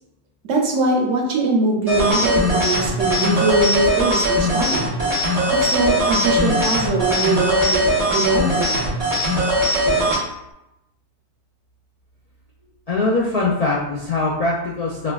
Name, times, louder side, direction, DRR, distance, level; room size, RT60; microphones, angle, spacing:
voice 1, 0.4-4.9 5.7-7.8 8.1-8.8, right 2 dB, 80° right, 0 dB, 1.0 m, -22 dB
sound 1, 1.9-10.2, equal, 35° right, 1.0 m, -19 dB
voice 2, 12.9-15.1, left 2 dB, 65° left, -5 dB, 0.4 m, -22 dB
4.3 x 2.2 x 2.3 m, 0.89 s
omnidirectional pair, 1.2 m